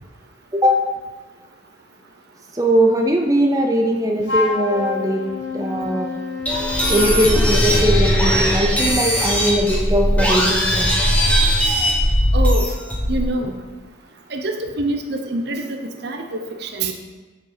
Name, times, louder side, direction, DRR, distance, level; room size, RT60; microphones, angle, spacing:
voice 1, 2.5-5.3 5.5-6.1 6.9-10.9, equal, 20° right, 1 dB, 0.6 m, -19 dB
Wind instrument woodwind instrument, 4.2-7.1, left 3 dB, 75° left, 2.0 m, -27 dB
sound 1, 6.5-13.3, equal, 10° left, 1.3 m, -18 dB
voice 2, 12.3-12.7 13.1-13.6 14.3-16.9, right 2 dB, 55° right, 4 dB, 0.7 m, -25 dB
6.9 x 5.9 x 5.1 m, 1.3 s
head